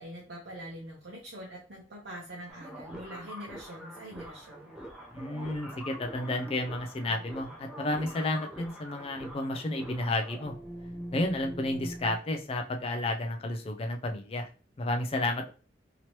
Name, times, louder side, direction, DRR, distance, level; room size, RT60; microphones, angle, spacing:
voice 1, 0.0-4.7, equal, 70° right, -4 dB, 0.8 m, -44 dB
sound 1, 2.5-12.2, equal, 5° right, 0.7 m, -44 dB
voice 2, 5.1-10.5 11.1-14.5 14.8-15.5, left 2 dB, 35° left, 4 dB, 0.4 m, -31 dB
2.9 x 2.9 x 3.0 m, 0.37 s
head